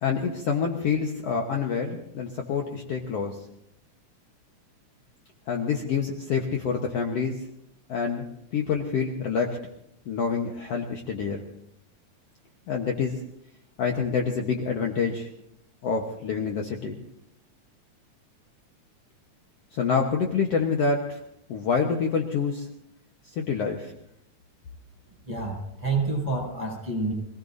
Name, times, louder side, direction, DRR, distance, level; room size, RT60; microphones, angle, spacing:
voice 1, 0.0-3.4 5.5-7.3 7.9-8.3 8.5-9.6 10.1-11.4 12.7-13.2 13.8-15.3 15.8-17.0 19.7-21.2 21.5-22.7 23.4-23.9, left 5 dB, 60° left, 1 dB, 2.1 m, -27 dB
voice 2, 25.3-27.1, right 3 dB, 10° right, -1 dB, 6.4 m, -28 dB
26.0 x 17.5 x 2.7 m, 0.78 s
omnidirectional pair, 3.4 m